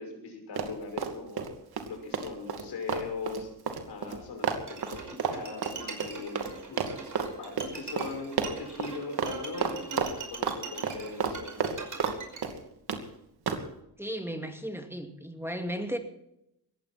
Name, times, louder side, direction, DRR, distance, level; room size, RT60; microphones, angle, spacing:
voice 1, 0.0-1.5 1.9-3.5 3.9-7.0 7.4-11.9, left 4 dB, 75° left, 3 dB, 6.0 m, -40 dB
Run, 0.5-1.5 1.8-6.5 6.8-7.3 7.6-7.7 8.0-8.1 8.4-8.9 9.2-9.3 9.6-10.6 10.8-12.2 12.4-13.0 13.5-13.6, right 6 dB, 70° right, 2.6 m, -31 dB
Bowed string instrument, 4.7-12.4, right 4 dB, 50° right, 5.4 m, -42 dB
voice 2, 14.0-16.0, equal, 5° right, 5 dB, 2.4 m, -35 dB
20.0 x 15.5 x 4.3 m, 0.82 s
cardioid pair, 85°, 39 cm